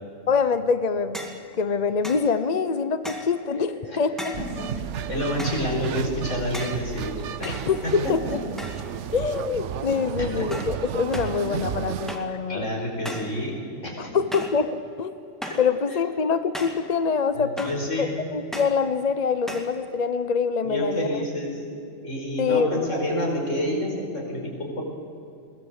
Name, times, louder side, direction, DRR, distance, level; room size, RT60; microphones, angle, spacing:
voice 1, 0.3-4.3 7.4-8.4 9.1-12.7 14.0-15.1 15.6-17.7 18.0-21.1 22.4-22.9, left 5 dB, 40° left, 12 dB, 0.7 m, -25 dB
sound 1, 1.1-1.4 2.0-2.3 3.0-3.4 4.2-4.5 5.4-5.7 6.5-6.9 7.4-8.1 8.6-9.0 9.3-9.7 10.5-10.8 11.1-11.4 12.1-12.4 13.0-13.4 14.3-14.6 15.4-15.7 16.5-16.9 17.6-17.9 18.5-18.8 19.5-19.8, equal, ahead, 2.2 m, -37 dB
voice 2, 3.5-4.0 4.6-4.7 5.1-7.1 7.4-7.6 7.8-7.9 8.3-8.4 10.2-10.5 12.5-13.6 13.8-14.1 15.4-15.6 17.3-18.2 20.6-24.8, left 1 dB, 70° left, -1 dB, 5.3 m, -29 dB
sound 2, 4.3-12.2, right 9 dB, 70° right, 1.0 m, -33 dB
22.0 x 18.5 x 8.1 m, 2.6 s
omnidirectional pair, 1.3 m